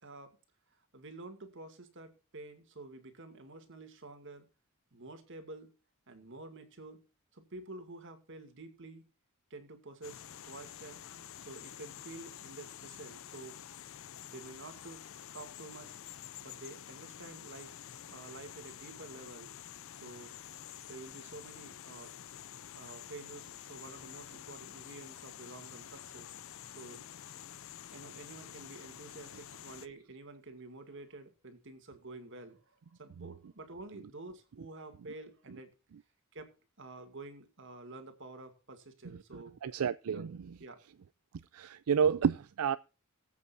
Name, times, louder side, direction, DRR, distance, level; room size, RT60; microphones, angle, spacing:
voice 1, 0.0-0.4 0.9-4.5 4.9-5.7 6.1-7.1 7.3-9.0 9.5-11.0 11.4-13.6 14.3-15.1 15.3-16.0 16.4-19.5 19.9-20.4 20.9-22.1 22.7-26.3 26.7-27.0 27.9-35.7 36.3-39.5 40.1-40.3 40.6-40.8, right 2 dB, 60° right, 2.2 m, -49 dB
sound 1, 10.0-29.9, left 10 dB, 65° left, 0.5 m, -49 dB
voice 2, 39.6-40.3 41.5-42.8, right 7 dB, 85° right, 0.4 m, -29 dB
20.0 x 8.3 x 2.6 m
head